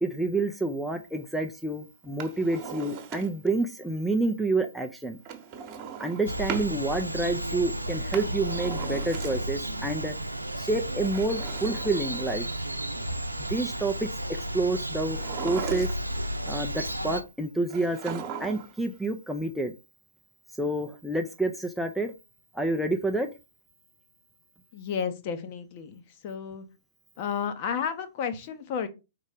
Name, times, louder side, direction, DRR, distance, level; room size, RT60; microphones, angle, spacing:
voice 1, 0.0-5.2 6.0-10.1 10.6-12.5 13.4-15.2 15.4-15.9 16.5-19.7 20.6-22.1 22.5-23.3, right 2 dB, ahead, 0.6 m, -28 dB
Drawer open or close, 2.0-3.6 5.2-6.7 7.9-9.7 10.9-12.6 15.0-16.3 17.7-18.8 19.1-19.2, right 7 dB, 30° right, 1.2 m, -38 dB
sound 1, 6.3-17.2, right 1 dB, 85° right, 0.7 m, -33 dB
voice 2, 24.7-26.7 27.2-28.9, left 7 dB, 40° left, 1.0 m, -32 dB
5.3 x 3.9 x 5.0 m
figure-of-eight pair, 115°, 0 cm